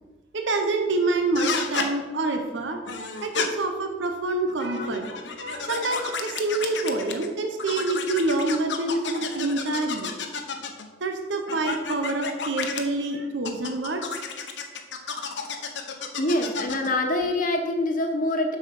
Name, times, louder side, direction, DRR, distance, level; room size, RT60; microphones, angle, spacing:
voice 1, 0.3-2.8 3.2-10.1 11.0-14.2 15.1-15.3, right 2 dB, 85° right, 4 dB, 1.0 m, -27 dB
sound 1, 1.3-1.9 2.9-3.5 4.5-7.3 7.6-10.9 11.5-12.8 13.4-16.9, left 5 dB, 70° left, 1.0 m, -31 dB
voice 2, 4.8-5.2 5.5-5.6 16.2-18.6, left 1 dB, 50° left, 4 dB, 1.2 m, -26 dB
7.4 x 6.2 x 5.9 m, 1.3 s
head